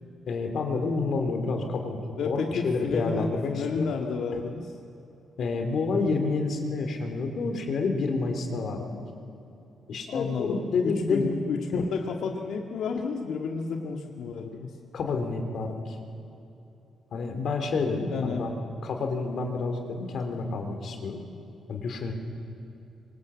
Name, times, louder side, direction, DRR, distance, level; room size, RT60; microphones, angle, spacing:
voice 1, 0.3-2.0 2.2-3.9 5.4-9.0 9.9-11.4 11.7-11.8 14.9-16.0 17.1-18.5 18.8-21.2 21.7-22.1, left 4 dB, 55° left, 4 dB, 3.6 m, -29 dB
voice 2, 2.2-4.7 10.1-14.7 18.1-18.4, left 5 dB, 75° left, 1 dB, 1.9 m, -31 dB
25.5 x 25.5 x 8.5 m, 2.9 s
cardioid pair, 165°, 0 cm